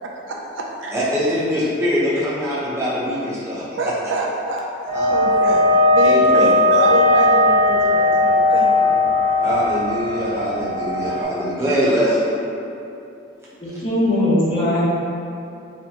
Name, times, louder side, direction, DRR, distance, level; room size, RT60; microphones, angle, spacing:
voice 1, 0.0-0.9 3.8-4.7 5.0-9.0, right 2 dB, 70° right, -1 dB, 0.4 m, -26 dB
voice 2, 0.9-3.6 4.9-5.1 6.0-6.5 9.4-12.3, equal, 15° right, -10 dB, 0.7 m, -22 dB
sound 1, 4.9-11.2, left 2 dB, 55° right, 1.0 m, -17 dB
voice 3, 13.6-14.9, left 1 dB, 30° left, -8 dB, 0.6 m, -19 dB
4.2 x 2.1 x 2.8 m, 2.7 s
head